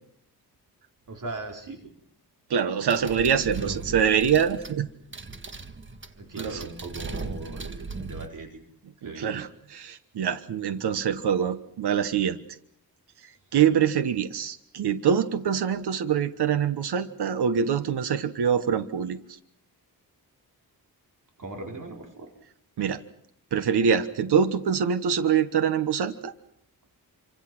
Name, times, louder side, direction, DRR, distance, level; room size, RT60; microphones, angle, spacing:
voice 1, 1.1-1.8 2.9-3.3 3.6-3.8 6.2-8.6 9.0-9.3 21.4-22.3, right 2 dB, 50° right, 2 dB, 4.3 m, -39 dB
voice 2, 2.5-4.9 6.4-6.7 7.7-7.8 9.0-12.4 13.2-19.4 22.8-23.0 23.5-26.3, right 7 dB, 85° right, 11 dB, 1.3 m, -25 dB
sound 1, 2.9-8.3, right 3 dB, 30° right, 1.6 m, -38 dB
27.5 x 25.5 x 6.1 m, 0.72 s
wide cardioid pair, 115°, 39 cm